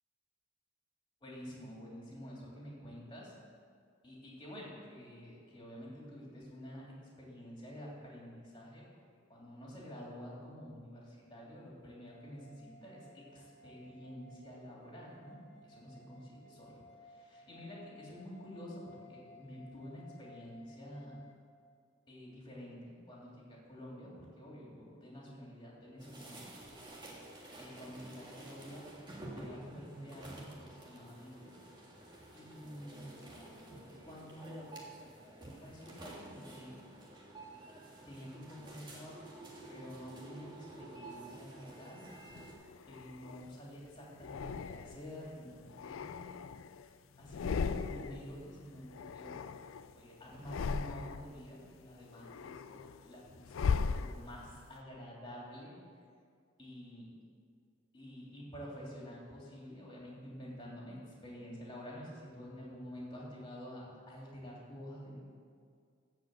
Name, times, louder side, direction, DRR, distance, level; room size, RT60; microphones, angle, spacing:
voice 1, 1.2-3.3 4.0-8.8 9.3-16.7 17.0-21.2 22.1-26.4 27.6-28.9 29.3-31.5 32.3-33.1 34.0-34.7 35.5-36.8 38.1-39.2 39.7-42.1 42.9-46.3 47.2-49.4 49.9-55.8 56.6-57.1 57.9-65.2, equal, 25° left, -4 dB, 3.0 m, -49 dB
sound 1, 12.0-21.4, left 2 dB, 60° left, 1.5 m, -59 dB
sound 2, 26.0-42.5, right 1 dB, 25° right, 1.7 m, -51 dB
sound 3, 42.3-43.5 44.2-45.2 45.6-46.9 47.2-48.3 48.6-49.9 50.3-51.4 51.8-54.6, left 5 dB, 85° left, 0.4 m, -38 dB
14.5 x 5.2 x 7.8 m, 2.1 s
head